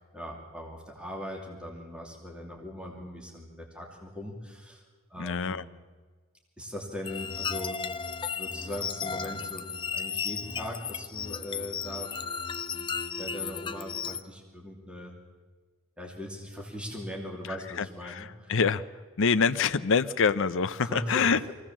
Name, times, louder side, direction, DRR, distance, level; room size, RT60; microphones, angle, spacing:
voice 1, 0.1-4.8 5.1-5.6 6.6-7.8 8.3-12.1 12.7-12.9 13.2-15.1 16.0-18.5 20.8-21.5, left 1 dB, 5° right, -1 dB, 2.7 m, -40 dB
voice 2, 5.2-5.6 17.5-18.8 19.2-21.4, left 5 dB, 65° left, 11 dB, 0.6 m, -26 dB
sound 1, 7.0-14.2, left 6 dB, 20° left, 0.5 m, -34 dB
23.0 x 16.5 x 7.5 m, 1.4 s
head